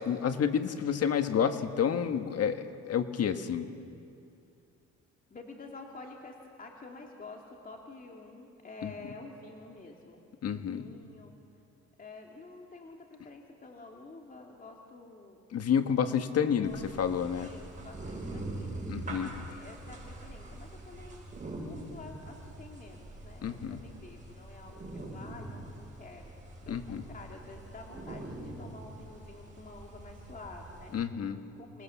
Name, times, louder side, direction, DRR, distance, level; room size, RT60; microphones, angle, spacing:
voice 1, 0.0-3.7 8.8-8.9 10.4-10.9 15.5-17.5 18.9-19.3 23.4-23.8 26.7-27.0 30.9-31.4, left 8 dB, 55° left, 8 dB, 1.5 m, -29 dB
voice 2, 5.3-11.3 12.0-15.4 16.6-18.9 19.4-21.2 21.6-26.3 26.7-31.0 31.6-31.8, left 3 dB, 30° left, 0 dB, 2.5 m, -49 dB
sound 1, 16.6-31.0, right 2 dB, 25° right, 7.2 m, -43 dB
27.5 x 20.5 x 7.1 m, 2.5 s
cardioid pair, 95°, 30 cm